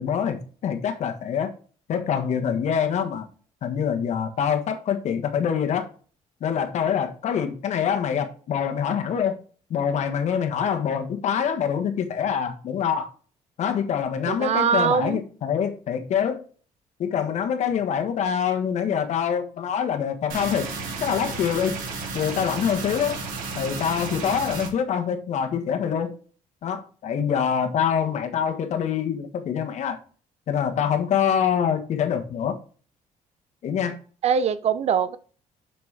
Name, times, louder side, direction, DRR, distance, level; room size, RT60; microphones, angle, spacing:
voice 1, 0.0-1.5 1.9-3.2 3.6-5.9 6.4-9.3 9.7-13.1 13.6-16.4 17.0-20.7 21.0-21.8 22.1-23.2 23.5-26.1 26.6-30.0 30.5-32.6 33.6-34.0, left 8 dB, 60° left, 1.4 m, -25 dB
voice 2, 14.3-15.2 34.2-35.2, right 7 dB, 50° right, 0.7 m, -22 dB
sound 1, 20.3-24.7, right 4 dB, 85° right, 2.6 m, -33 dB
6.2 x 6.0 x 4.7 m
cardioid pair, 130°, 14 cm